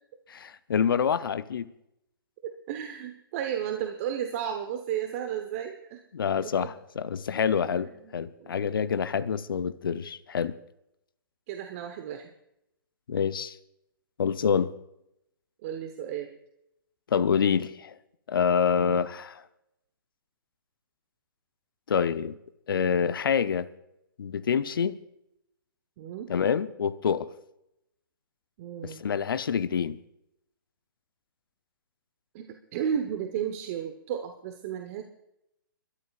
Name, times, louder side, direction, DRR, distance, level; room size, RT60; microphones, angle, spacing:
voice 1, 0.3-1.7 6.1-10.5 13.1-13.6 14.2-14.7 17.1-18.0 18.3-19.4 21.9-22.3 22.7-23.7 24.2-25.0 26.3-27.3 28.8-30.0, left 7 dB, 70° left, 0.7 m, -27 dB
voice 2, 2.4-6.0 6.4-6.7 7.7-8.8 11.5-12.3 15.6-16.3 18.8-19.0 26.0-26.3 28.6-29.0 32.3-35.0, right 9 dB, 40° right, 1.1 m, -34 dB
30.0 x 13.0 x 2.5 m
hypercardioid pair, 130°, 12 cm